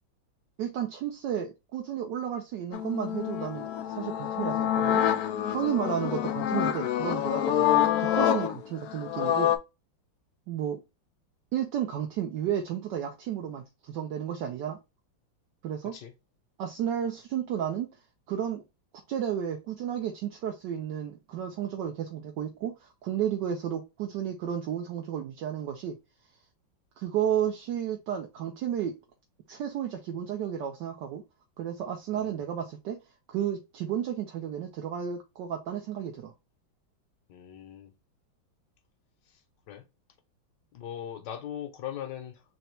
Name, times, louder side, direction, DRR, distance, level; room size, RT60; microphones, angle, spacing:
voice 1, 0.6-5.0 5.5-9.5 10.5-10.8 11.5-14.8 15.6-16.0 16.6-17.9 18.3-18.6 19.1-26.0 27.0-29.0 29.5-31.2 31.6-33.0 33.3-36.3, right 9 dB, 70° right, 1.2 m, -32 dB
sound 1, 2.7-9.6, left 11 dB, 80° left, 0.8 m, -27 dB
voice 2, 37.3-37.9 39.7-39.9 40.7-42.4, left 10 dB, 65° left, 1.3 m, -40 dB
4.3 x 2.9 x 3.1 m
omnidirectional pair, 2.2 m